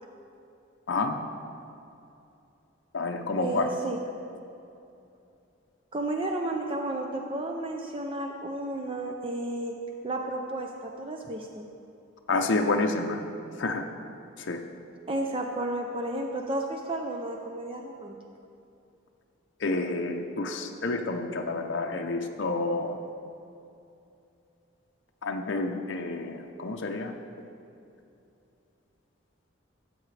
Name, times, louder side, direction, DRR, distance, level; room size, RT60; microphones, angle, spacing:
voice 1, 0.9-1.2 2.9-3.7 12.3-13.2 13.6-13.9 14.4-14.6 19.6-23.0 25.2-27.1, left 3 dB, 65° left, 3 dB, 0.6 m, -29 dB
voice 2, 3.3-4.0 5.9-9.7 10.0-11.6 15.1-18.2, right 2 dB, 25° right, 2 dB, 0.5 m, -32 dB
13.0 x 7.7 x 3.2 m, 2.7 s
head